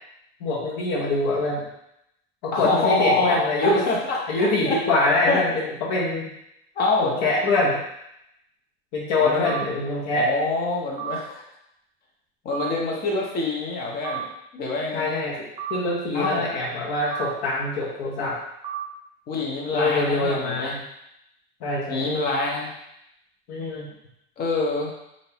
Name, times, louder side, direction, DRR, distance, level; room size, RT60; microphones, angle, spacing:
voice 1, 0.4-1.6 2.4-3.8 4.3-6.3 7.0-7.8 8.9-10.3 14.9-18.4 19.7-20.8 21.6-22.1 23.5-23.9, left 2 dB, 70° left, -3 dB, 1.0 m, -24 dB
voice 2, 2.5-4.8 5.3-5.4 6.8-7.2 9.2-9.5 10.1-11.4 12.4-14.2 14.5-15.0 16.1-16.5 19.3-20.8 21.9-22.7 24.4-24.9, left 3 dB, 30° left, -1 dB, 0.8 m, -25 dB
sound 1, 9.4-9.6 11.0-11.2 12.5-12.7 14.0-14.2 15.6-15.8 17.1-17.3 18.6-18.8, right 10 dB, 20° right, 0.4 m, -31 dB
3.5 x 2.6 x 2.9 m, 0.81 s
supercardioid pair, 140°, 30 cm